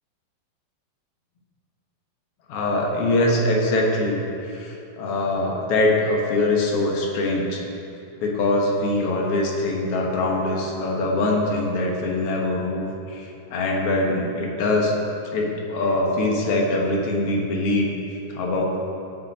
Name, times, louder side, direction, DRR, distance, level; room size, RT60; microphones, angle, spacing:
voice 1, 2.5-7.6 8.2-14.9 15.3-18.8, left 2 dB, 55° left, -1 dB, 1.8 m, -23 dB
18.5 x 7.3 x 4.4 m, 2.7 s
omnidirectional pair, 4.3 m